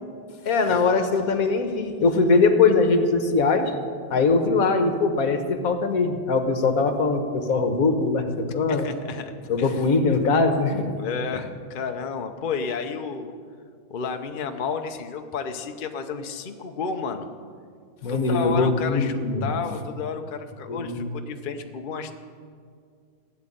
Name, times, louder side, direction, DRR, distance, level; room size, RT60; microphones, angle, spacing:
voice 1, 0.4-3.7 4.1-8.9 9.5-10.9 18.0-19.5 20.7-21.0, left 4 dB, 50° left, 7 dB, 1.4 m, -21 dB
voice 2, 8.7-9.8 11.0-13.3 13.9-17.3 18.1-22.2, left 5 dB, 70° left, 6 dB, 0.4 m, -32 dB
15.5 x 7.4 x 10.0 m, 2.1 s
omnidirectional pair, 2.2 m